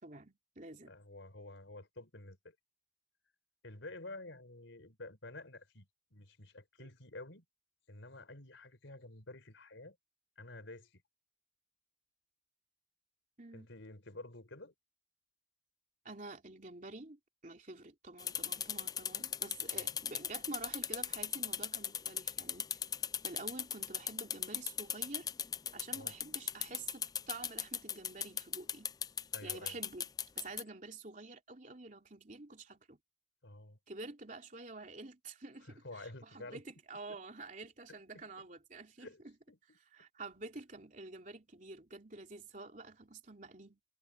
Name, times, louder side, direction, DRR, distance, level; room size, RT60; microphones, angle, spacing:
voice 1, 0.0-0.9 6.8-6.9 13.4-13.7 16.0-22.8 23.2-25.3 25.7-28.9 29.4-30.0 30.3-33.0 33.9-39.3 39.9-43.8, right 2 dB, 40° right, 3.3 m, -49 dB
voice 2, 0.8-2.6 3.6-7.4 7.9-10.0 10.4-11.0 13.5-14.7 19.7-20.0 25.9-26.1 29.3-29.8 33.4-33.8 35.6-36.6 37.1-37.2 37.9-38.4 39.0-39.8, left 2 dB, 85° left, 4.1 m, -50 dB
sound 1, 18.2-30.6, left 8 dB, 20° left, 0.3 m, -38 dB
head